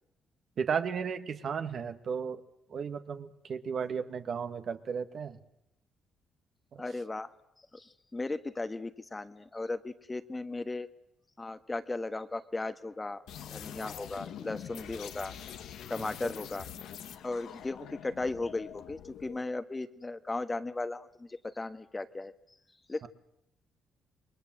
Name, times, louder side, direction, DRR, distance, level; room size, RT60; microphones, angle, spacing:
voice 1, 0.6-2.4 2.7-5.4 6.7-6.8 16.2-16.3 23.0-23.1, right 6 dB, 55° right, 8 dB, 1.8 m, -34 dB
voice 2, 6.8-7.3 7.7-10.9 11.4-13.2 13.5-15.3 15.9-16.7 17.2-22.3 22.9-23.1, left 2 dB, 20° left, 10 dB, 1.4 m, -36 dB
sound 1, 13.3-19.4, left 9 dB, 80° left, 1.6 m, -45 dB
28.5 x 22.0 x 7.8 m, 0.79 s
cardioid pair, 90°, 0 cm